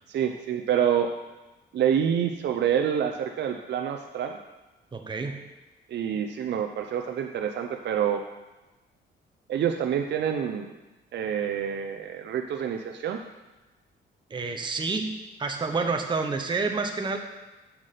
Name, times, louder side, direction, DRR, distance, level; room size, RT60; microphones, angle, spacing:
voice 1, 0.1-1.1 1.7-4.4 5.9-8.2 9.5-10.7 11.1-13.2, right 8 dB, 60° right, 4 dB, 0.7 m, -27 dB
voice 2, 4.9-5.5 14.3-17.2, right 4 dB, 25° right, 4 dB, 0.8 m, -29 dB
7.6 x 6.0 x 6.7 m, 1.1 s
cardioid pair, 90°, 20 cm